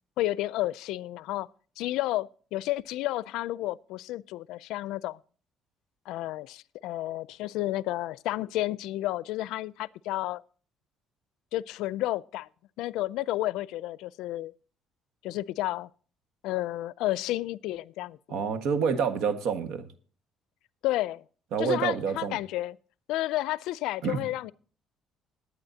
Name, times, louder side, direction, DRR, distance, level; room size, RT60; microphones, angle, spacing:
voice 1, 0.2-1.5 1.8-5.2 6.1-10.4 11.5-12.5 12.8-14.5 15.2-15.9 16.4-18.4 20.8-21.2 21.6-22.8 23.1-24.5, left 16 dB, 85° left, 0.4 m, -31 dB
voice 2, 18.3-19.9 21.5-22.4 24.0-24.3, right 6 dB, 75° right, 1.5 m, -28 dB
21.0 x 9.2 x 2.8 m
cardioid pair, 125°, 0 cm